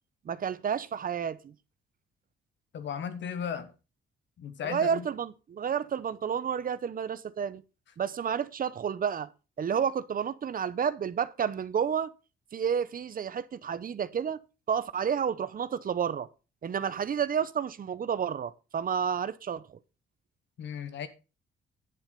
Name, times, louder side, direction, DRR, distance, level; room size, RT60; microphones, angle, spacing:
voice 1, 0.2-1.5 4.6-7.6 8.0-9.3 9.6-12.1 12.5-14.4 14.7-16.3 16.6-19.8, right 7 dB, 45° right, 0.8 m, -30 dB
voice 2, 2.7-3.7 4.4-5.0 20.6-21.1, left 7 dB, 65° left, 1.6 m, -35 dB
10.5 x 7.2 x 5.3 m
cardioid pair, 90°, 20 cm